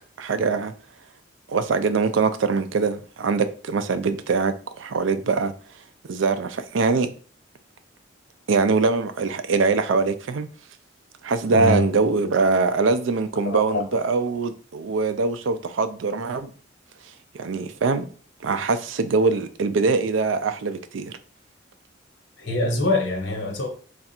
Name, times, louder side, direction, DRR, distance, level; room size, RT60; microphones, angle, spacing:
voice 1, 0.2-0.7 1.5-5.5 6.1-7.1 8.5-10.5 11.2-16.5 17.3-18.1 18.4-21.1, right 4 dB, 80° right, 0.4 m, -23 dB
voice 2, 11.5-11.8 13.4-13.8 22.4-23.7, left 2 dB, 65° left, 1.2 m, -24 dB
3.4 x 2.4 x 4.2 m
head